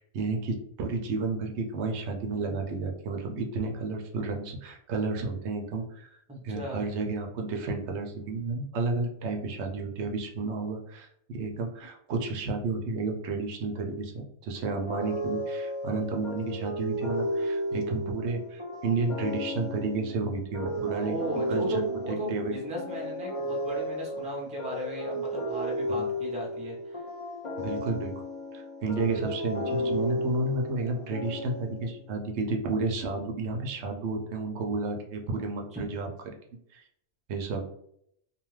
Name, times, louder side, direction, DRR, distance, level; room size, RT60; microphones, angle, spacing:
voice 1, 0.0-21.2 21.5-22.5 25.9-26.1 27.6-28.1 28.5-36.1 36.7-36.8 37.3-37.6, right 3 dB, 75° right, 2 dB, 0.8 m, -31 dB
voice 2, 6.3-6.9 21.0-27.0 35.7-35.8, right 1 dB, 10° right, -2 dB, 0.5 m, -36 dB
sound 1, 14.9-32.0, equal, 40° left, 0.5 m, -33 dB
2.6 x 2.3 x 3.1 m, 0.71 s
omnidirectional pair, 1.2 m